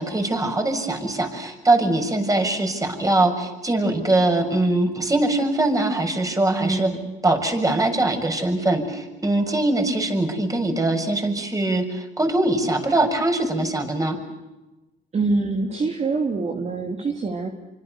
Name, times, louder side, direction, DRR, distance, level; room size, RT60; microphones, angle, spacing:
voice 1, 0.0-6.9 7.2-14.2, right 2 dB, 20° right, 5 dB, 7.0 m, -22 dB
voice 2, 6.6-7.1 15.1-17.5, right 3 dB, 40° right, 3 dB, 3.1 m, -25 dB
27.0 x 25.5 x 6.9 m, 1.1 s
cardioid pair, 85°, 18 cm